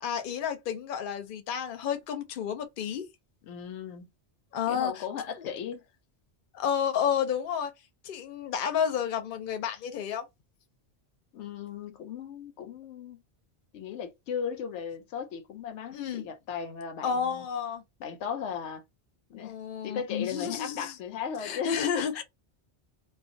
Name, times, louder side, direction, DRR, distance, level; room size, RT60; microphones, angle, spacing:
voice 1, 0.0-3.1 4.5-5.0 5.4-5.5 6.5-7.7 8.0-10.3 15.9-16.2 17.0-17.8 19.4-20.9 21.4-22.2, left 8 dB, 55° left, 0.7 m, -31 dB
voice 2, 3.4-4.1 4.7-5.8 11.3-13.2 13.7-17.5 18.0-18.8 19.3-19.6 19.8-22.2, left 7 dB, 90° left, 0.9 m, -37 dB
2.3 x 2.2 x 2.6 m
omnidirectional pair, 1.2 m